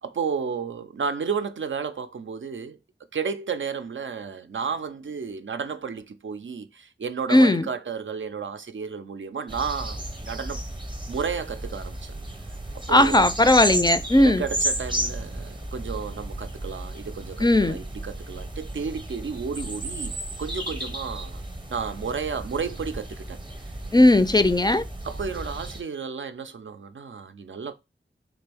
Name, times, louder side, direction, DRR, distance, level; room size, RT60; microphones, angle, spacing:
voice 1, 0.0-2.8 3.1-10.6 11.1-12.1 12.9-13.3 14.2-21.4 21.7-23.4 25.0-27.7, right 6 dB, 80° right, 0.4 m, -32 dB
voice 2, 7.3-7.7 12.9-14.4 17.4-17.8 23.9-24.8, left 1 dB, 20° left, 0.3 m, -17 dB
sound 1, 9.5-25.8, right 1 dB, 25° right, 0.7 m, -33 dB
3.7 x 2.6 x 3.3 m
wide cardioid pair, 65°, 20 cm